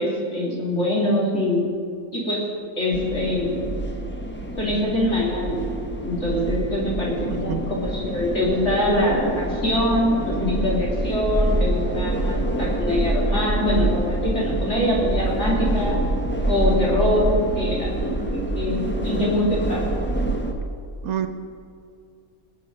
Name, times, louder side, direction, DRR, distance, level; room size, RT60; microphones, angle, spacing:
voice 1, 0.0-1.6 2.1-2.4 2.8-3.6 4.6-5.7 6.0-16.0 16.5-19.8, left 1 dB, 55° left, -5 dB, 3.2 m, -24 dB
sound 1, 2.9-20.5, right 1 dB, 10° left, 1.1 m, -26 dB
voice 2, 7.3-7.6 21.0-21.3, right 10 dB, 80° right, 8 dB, 1.3 m, -27 dB
21.5 x 7.5 x 5.3 m, 2.4 s
omnidirectional pair, 1.5 m